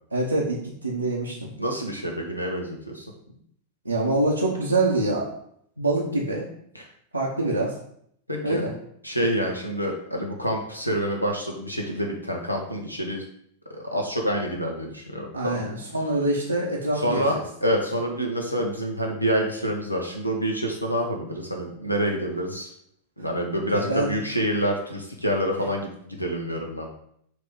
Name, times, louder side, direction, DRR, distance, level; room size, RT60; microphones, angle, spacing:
voice 1, 0.1-1.5 3.8-5.3 5.8-6.4 7.1-7.7 8.4-8.7 15.3-17.4 23.7-24.1, right 2 dB, 85° right, -5 dB, 0.9 m, -25 dB
voice 2, 1.6-3.1 6.7-6.8 8.3-8.6 9.0-13.2 13.7-15.6 17.0-17.3 17.6-22.7 23.2-27.0, equal, 85° left, 1 dB, 1.2 m, -27 dB
6.4 x 3.1 x 4.9 m, 0.68 s
figure-of-eight pair, 90°, 0 cm